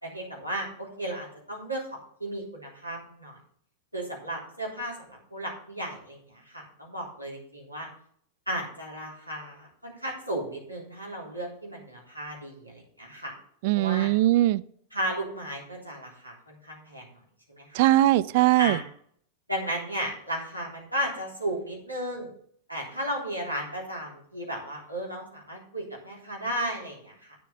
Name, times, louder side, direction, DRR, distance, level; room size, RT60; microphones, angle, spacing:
voice 1, 0.0-3.4 3.9-7.9 8.5-13.3 13.7-14.1 14.9-17.0 17.5-17.9 18.6-18.8 19.5-22.3 22.7-27.3, right 1 dB, 90° left, -3 dB, 3.3 m, -34 dB
voice 2, 13.6-14.6 17.7-18.8, right 15 dB, 50° right, 19 dB, 0.4 m, -20 dB
9.2 x 7.2 x 5.6 m, 0.62 s
figure-of-eight pair, 90°, 0 cm